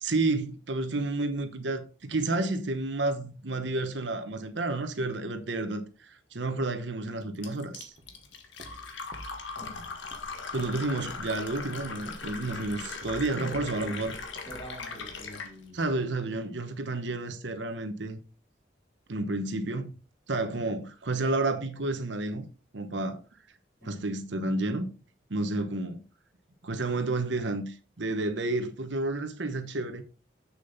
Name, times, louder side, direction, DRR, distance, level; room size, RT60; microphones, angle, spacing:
voice 1, 0.0-7.9 10.5-14.1 15.7-18.2 19.1-19.9 20.3-22.5 22.7-23.2 23.8-24.9 25.3-26.0 26.6-30.0, right 2 dB, 75° right, 1.1 m, -30 dB
Fill (with liquid), 7.4-15.5, left 4 dB, 80° left, 1.6 m, -40 dB
Walk footsteps, 8.0-15.9, right 1 dB, 40° right, 1.3 m, -49 dB
voice 2, 9.5-10.0 12.2-12.5 13.3-14.0 14.4-16.1 23.8-24.0, equal, 20° left, 2.9 m, -45 dB
7.6 x 6.7 x 4.0 m
head